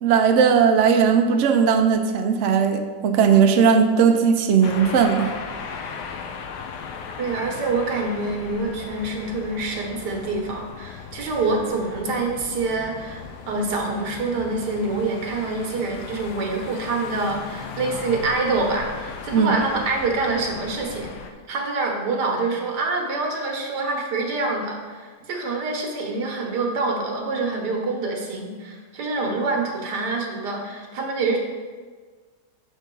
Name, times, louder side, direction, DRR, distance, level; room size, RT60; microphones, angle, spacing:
voice 1, 0.0-5.3 19.3-19.5, right 6 dB, 65° right, 5 dB, 0.7 m, -18 dB
sound 1, 4.6-21.3, left 6 dB, 80° left, 1.2 m, -37 dB
voice 2, 7.2-21.1 21.5-31.4, right 3 dB, 90° right, 1 dB, 1.6 m, -26 dB
6.8 x 4.6 x 4.5 m, 1.5 s
omnidirectional pair, 1.7 m